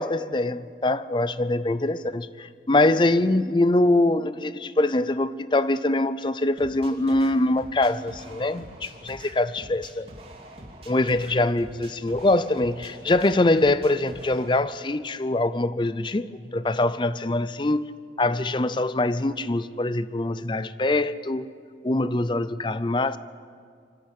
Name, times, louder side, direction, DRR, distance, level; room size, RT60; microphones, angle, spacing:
voice 1, 0.0-10.1 10.9-17.9 18.2-21.5 21.8-23.2, left 2 dB, 25° left, 0.5 m, -23 dB
sound 1, 6.6-14.6, right 1 dB, 35° right, 2.6 m, -45 dB
25.5 x 13.5 x 8.3 m
head